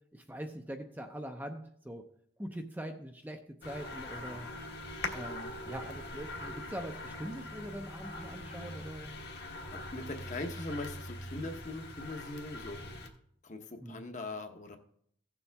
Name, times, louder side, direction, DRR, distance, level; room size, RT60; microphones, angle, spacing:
voice 1, 0.1-2.0 2.4-3.4 3.6-4.5 5.1-9.2 13.8-14.0, right 1 dB, 10° right, 4 dB, 0.6 m, -42 dB
sound 1, 3.6-13.1, left 2 dB, 55° left, 1.2 m, -42 dB
voice 2, 9.7-12.8 13.4-14.8, left 2 dB, 40° left, 5 dB, 0.9 m, -41 dB
16.0 x 7.0 x 3.4 m, 0.65 s
head